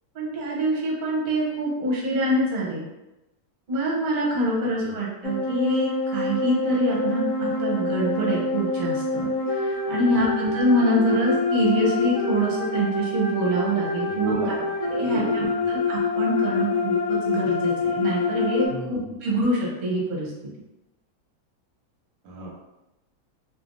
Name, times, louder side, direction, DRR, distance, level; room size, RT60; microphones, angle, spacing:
voice 1, 0.1-2.9 3.7-14.3 14.9-20.3, right 1 dB, 40° right, -4 dB, 0.8 m, -25 dB
voice 2, 4.6-4.9 9.9-10.2 14.1-15.4 18.7-19.2 22.2-22.5, right 3 dB, 70° right, -3 dB, 0.9 m, -34 dB
sound 1, 5.2-18.7, left 3 dB, 65° left, 1.0 m, -26 dB
3.2 x 2.2 x 2.5 m, 0.98 s
omnidirectional pair, 1.7 m